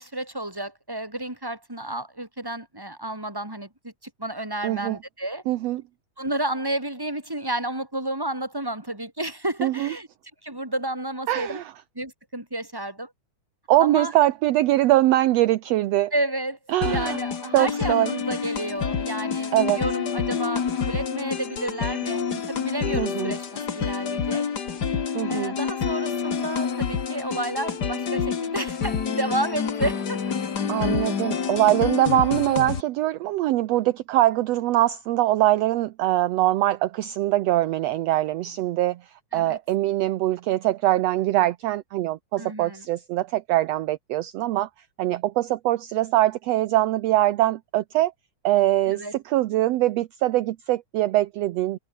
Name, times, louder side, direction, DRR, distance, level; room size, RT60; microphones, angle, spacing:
voice 1, 0.0-5.4 6.2-10.1 10.4-11.6 11.9-13.1 13.8-14.1 16.1-16.6 16.8-24.5 25.3-30.3 39.3-39.6 42.4-42.9 48.9-49.1, right 1 dB, 5° right, 4.7 m, -31 dB
voice 2, 4.6-5.0 5.5-5.8 9.6-9.9 11.3-11.7 13.7-16.1 16.7-17.2 17.5-18.1 19.5-19.8 23.0-23.3 25.1-25.5 30.7-44.7 45.0-48.1 48.4-51.8, right 15 dB, 75° right, 1.6 m, -23 dB
sound 1, 16.8-32.8, left 6 dB, 40° left, 1.9 m, -28 dB
omnidirectional pair, 3.6 m